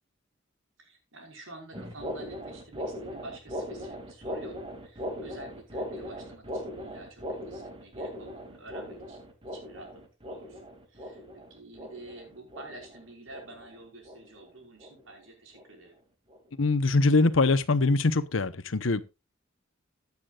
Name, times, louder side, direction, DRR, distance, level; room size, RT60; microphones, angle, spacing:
voice 1, 0.8-4.6 4.8-9.2 9.4-10.6 10.9-16.0, right 2 dB, 85° right, 5.2 m, -49 dB
sound 1, 1.7-14.5 14.8-15.1 15.5-15.8 16.3-16.5 17.0-17.1 17.8-17.9, equal, 25° right, 2.3 m, -39 dB
voice 2, 16.6-19.0, left 3 dB, 85° left, 0.9 m, -23 dB
15.5 x 9.6 x 2.4 m
head